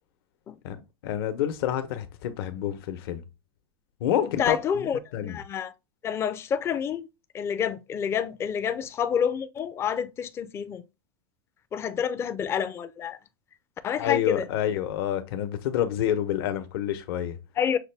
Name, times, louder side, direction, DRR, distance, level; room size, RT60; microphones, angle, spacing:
voice 1, 1.0-3.2 4.0-5.4 14.0-17.4, left 11 dB, 70° left, 0.9 m, -28 dB
voice 2, 4.2-5.7 6.0-7.1 7.3-10.8 11.7-13.2 13.8-14.5 17.6-17.8, left 8 dB, 20° left, 0.4 m, -28 dB
6.5 x 2.2 x 3.3 m
supercardioid pair, 150°, 13 cm